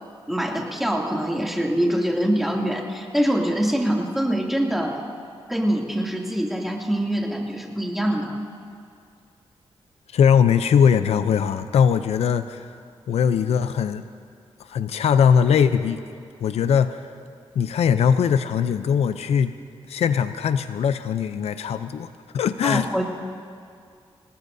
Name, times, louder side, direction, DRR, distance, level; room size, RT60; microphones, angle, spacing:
voice 1, 0.3-5.0 5.5-8.4 22.6-23.0, equal, ahead, -1 dB, 2.5 m, -24 dB
voice 2, 10.1-12.7 13.1-14.0 14.7-16.0 16.4-17.0 17.5-19.5 19.9-23.0, left 7 dB, 90° left, 11 dB, 0.5 m, -20 dB
27.0 x 19.0 x 2.7 m, 2.3 s
cardioid pair, 80°, 10 cm